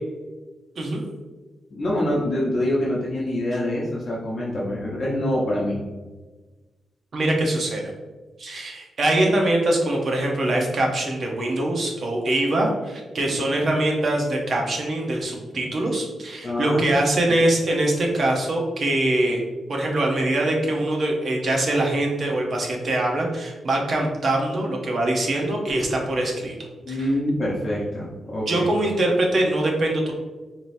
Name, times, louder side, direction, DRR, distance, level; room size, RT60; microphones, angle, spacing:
voice 1, 1.7-5.8 16.4-16.8 26.8-28.7, left 1 dB, 40° left, -6 dB, 0.8 m, -25 dB
voice 2, 7.1-7.9 8.4-19.4 19.7-26.5 26.9-27.1 28.5-30.1, right 1 dB, 45° right, 0 dB, 0.9 m, -23 dB
4.9 x 3.0 x 2.7 m, 1.3 s
wide cardioid pair, 140°, 0 cm